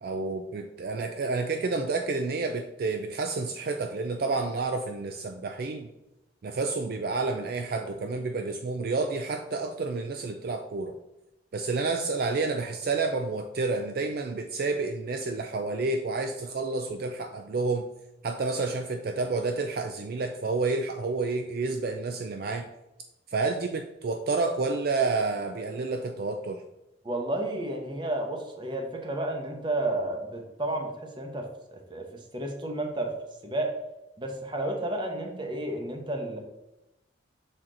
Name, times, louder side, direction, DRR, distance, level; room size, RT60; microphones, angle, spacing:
voice 1, 0.0-5.9 6.4-10.9 11.5-17.9 18.2-22.7 23.3-26.6, right 3 dB, 50° right, 5 dB, 0.4 m, -29 dB
voice 2, 27.0-32.1 32.3-33.1 33.4-33.8 34.2-36.4, right 1 dB, 25° right, 3 dB, 0.8 m, -32 dB
6.1 x 4.3 x 3.8 m, 0.94 s
head